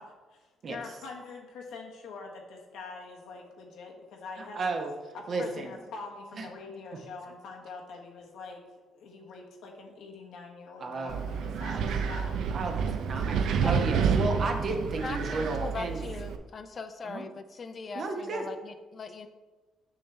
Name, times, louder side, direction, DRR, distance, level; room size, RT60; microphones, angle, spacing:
voice 1, 0.0-4.6 5.1-8.6 8.9-12.4 13.2-13.3, left 4 dB, 85° left, 0 dB, 1.1 m, -44 dB
voice 2, 4.4-4.9 5.3-5.7 6.3-6.5 10.8-11.2 11.7-12.0 12.5-16.0 17.1-17.2 17.9-18.4, right 3 dB, 55° right, 3 dB, 1.0 m, -33 dB
Wind, 11.1-16.4, right 6 dB, 80° right, 0.5 m, -29 dB
voice 3, 15.0-19.3, left 4 dB, 45° left, 9 dB, 0.5 m, -40 dB
6.3 x 5.8 x 3.3 m, 1.3 s
cardioid pair, 90°, 0 cm